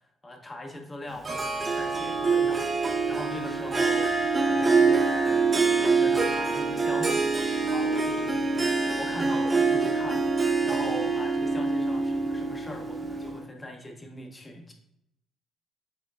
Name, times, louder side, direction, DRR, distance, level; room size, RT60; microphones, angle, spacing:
voice 1, 0.2-7.3 7.7-8.6 9.0-14.7, left 1 dB, 25° left, 3 dB, 0.8 m, -41 dB
Harp, 1.2-13.4, right 4 dB, 30° right, 0.4 m, -25 dB
4.4 x 3.0 x 2.4 m, 0.80 s
supercardioid pair, 60°, 0 cm